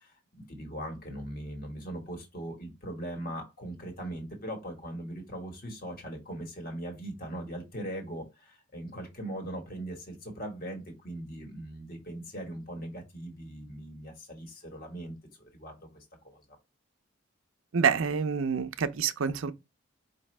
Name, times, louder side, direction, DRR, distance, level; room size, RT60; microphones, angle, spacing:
voice 1, 0.0-16.4, right 1 dB, 45° left, 1.5 m, -40 dB
voice 2, 17.7-19.5, right 6 dB, 85° right, 0.5 m, -27 dB
5.1 x 2.7 x 3.3 m
head